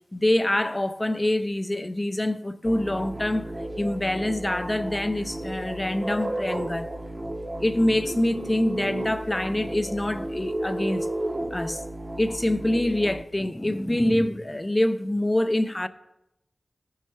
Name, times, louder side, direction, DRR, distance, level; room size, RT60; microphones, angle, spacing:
voice 1, 0.0-3.5 3.8-6.9 7.6-11.1 11.5-11.8 12.2-15.9, left 1 dB, 20° left, 0.4 m, -25 dB
sound 1, 2.6-13.2, right 1 dB, 30° right, 0.7 m, -33 dB
14.5 x 5.5 x 3.1 m
wide cardioid pair, 60°, 0 cm